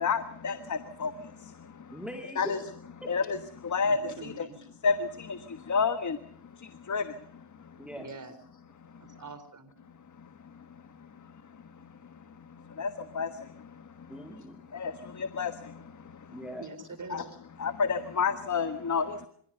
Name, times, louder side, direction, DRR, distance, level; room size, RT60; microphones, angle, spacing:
voice 1, 0.0-0.6 1.0-1.1 2.4-2.6 3.1-3.4 3.7-4.0 4.8-4.9 5.7-6.2 6.9-7.0 12.8-12.9 13.2-13.3 14.8-14.9 15.4-15.5 17.1-17.2 17.6-19.3, left 5 dB, 40° left, 11 dB, 1.3 m, -27 dB
voice 2, 1.9-2.6 3.0-3.1 7.8-8.1 14.1-14.7 16.3-16.7, equal, ahead, 4 dB, 2.5 m, -41 dB
voice 3, 3.9-4.6 8.0-8.4 9.2-9.7 16.6-17.3, right 3 dB, 40° right, 11 dB, 3.7 m, -44 dB
25.5 x 16.5 x 6.7 m, 0.63 s
cardioid pair, 85°, 47 cm